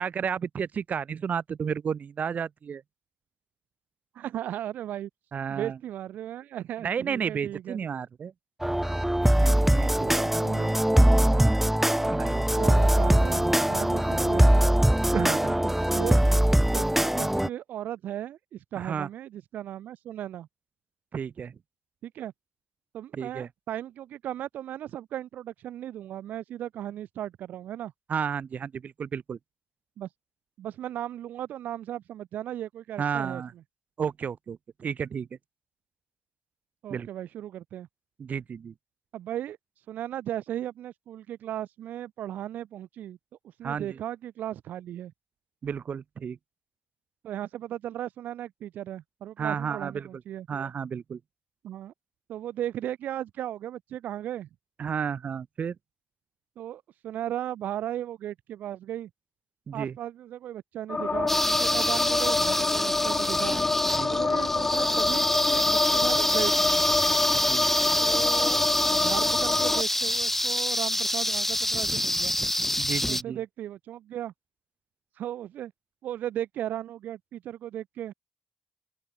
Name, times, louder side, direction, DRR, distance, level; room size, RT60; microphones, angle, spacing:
voice 1, 0.0-2.8 5.3-5.8 6.8-8.3 9.4-10.5 11.3-11.6 12.1-12.5 15.1-15.7 18.8-19.1 21.1-21.5 23.1-23.5 28.1-29.4 33.0-33.5 34.0-35.3 36.9-37.1 38.2-38.7 43.6-44.0 45.6-46.4 49.4-50.1 50.5-51.2 54.8-55.8 59.7-59.9 63.5-63.6 64.0-64.3 67.3-67.7 72.8-73.4, right 7 dB, 65° right, 0.8 m, -32 dB
voice 2, 4.1-5.1 5.5-7.8 10.2-10.8 12.6-14.7 15.9-16.2 16.7-16.8 17.2-20.5 22.0-22.3 22.9-27.9 30.0-30.1 30.6-33.4 36.8-37.9 39.1-39.6 39.9-43.2 43.4-45.1 47.2-50.5 51.6-51.9 52.3-54.5 56.6-59.1 59.7-63.6 64.1-66.8 68.0-72.3 73.1-74.3 75.1-75.7 76.0-78.1, right 11 dB, 80° right, 1.4 m, -36 dB
sound 1, 8.6-17.5, right 1 dB, 5° right, 0.6 m, -22 dB
sound 2, 60.9-69.8, left 3 dB, 35° left, 0.7 m, -27 dB
sound 3, 61.3-73.2, left 1 dB, 10° left, 1.2 m, -26 dB
open air
supercardioid pair, 40°, 3 cm